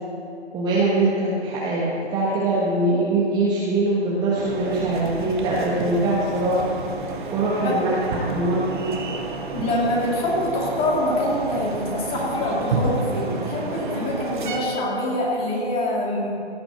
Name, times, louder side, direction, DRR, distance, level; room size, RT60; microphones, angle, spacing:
voice 1, 0.5-6.7 7.3-8.9, right 2 dB, 10° right, -7 dB, 1.4 m, -22 dB
sound 1, 4.3-14.6, right 3 dB, 45° right, 1.7 m, -31 dB
voice 2, 9.5-16.3, left 1 dB, 15° left, -3 dB, 2.5 m, -25 dB
17.0 x 6.0 x 7.9 m, 2.9 s
figure-of-eight pair, 140°, 34 cm